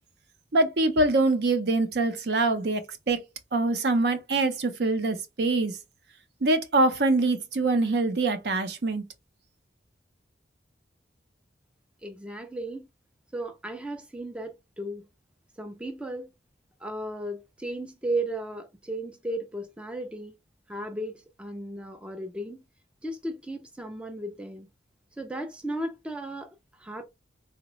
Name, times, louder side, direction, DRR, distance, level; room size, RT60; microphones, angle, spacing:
voice 1, 0.5-3.2 3.5-5.8 6.4-9.0, right 2 dB, 60° right, 0.6 m, -24 dB
voice 2, 12.0-12.9 13.3-15.1 15.6-16.3 16.8-20.3 20.7-22.6 23.0-24.7 25.2-27.0, right 1 dB, 5° right, 0.3 m, -35 dB
3.8 x 2.1 x 2.9 m
head